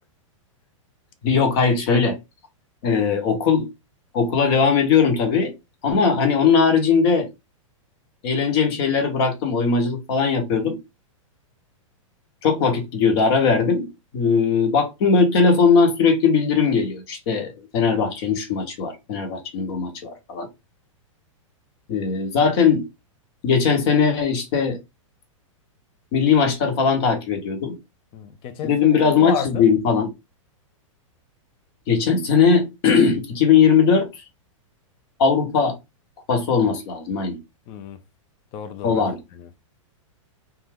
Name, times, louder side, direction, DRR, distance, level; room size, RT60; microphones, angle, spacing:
voice 1, 1.2-2.2 2.8-3.7 4.1-5.5 5.8-7.3 8.2-10.8 12.4-13.9 14.1-20.5 21.9-22.8 23.4-24.8 26.1-27.8 28.6-30.1 31.9-34.1 35.2-35.7 36.3-37.4 38.8-39.2, left 5 dB, 50° left, 1.0 m, -19 dB
voice 2, 28.1-28.7 29.2-29.7 37.7-38.0 38.5-39.0 39.3-39.5, left 9 dB, 30° left, 0.4 m, -31 dB
2.5 x 2.3 x 3.3 m
hypercardioid pair, 140°, 17 cm